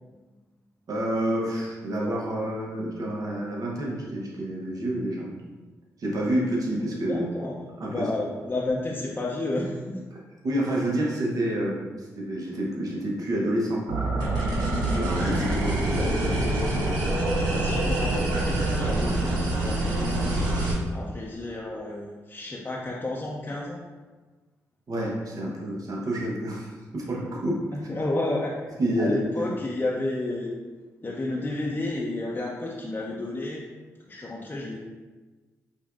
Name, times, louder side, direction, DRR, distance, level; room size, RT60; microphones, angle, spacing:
voice 1, 0.9-5.3 6.0-7.3 7.8-8.1 10.4-14.3 14.9-16.1 24.9-27.7 28.8-29.5, right 1 dB, 60° right, -3 dB, 1.0 m, -28 dB
voice 2, 7.1-7.5 7.9-10.0 15.9-16.4 17.5-20.3 20.9-23.8 27.7-30.5 31.0-33.6 34.1-34.8, left 2 dB, 30° left, -3 dB, 0.6 m, -31 dB
sound 1, 13.9-20.7, right 1 dB, 90° right, 0.7 m, -25 dB
5.2 x 2.4 x 2.5 m, 1.3 s
supercardioid pair, 45°, 7 cm